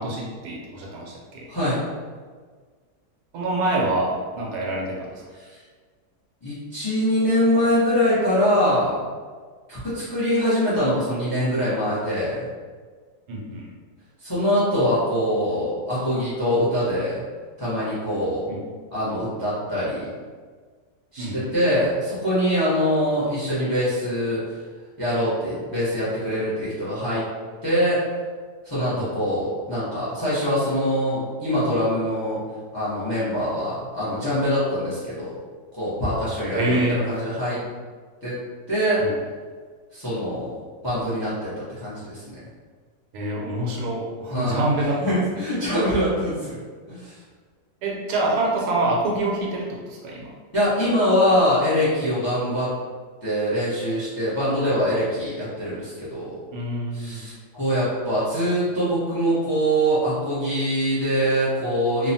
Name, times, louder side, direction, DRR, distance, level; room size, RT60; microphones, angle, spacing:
voice 1, 0.0-1.5 3.3-5.2 13.3-13.7 18.5-18.6 21.2-21.5 28.9-29.1 36.5-37.0 39.0-39.1 43.1-45.2 47.8-50.3 56.5-57.2, right 2 dB, 80° right, -3 dB, 1.2 m, -26 dB
voice 2, 6.4-9.0 9.7-12.5 14.2-17.2 17.6-18.5 18.9-20.1 21.1-24.4 25.0-27.2 27.6-28.0 28.6-32.4 32.7-35.3 35.8-36.8 37.1-37.6 38.2-38.3 38.7-39.0 39.9-40.6 40.8-41.5 41.8-42.3 44.3-44.6 45.0-46.6 46.9-47.2 50.5-52.7 53.2-56.4 56.9-62.1, equal, 20° left, -10 dB, 0.5 m, -23 dB
3.0 x 2.1 x 2.6 m, 1.5 s
omnidirectional pair, 1.6 m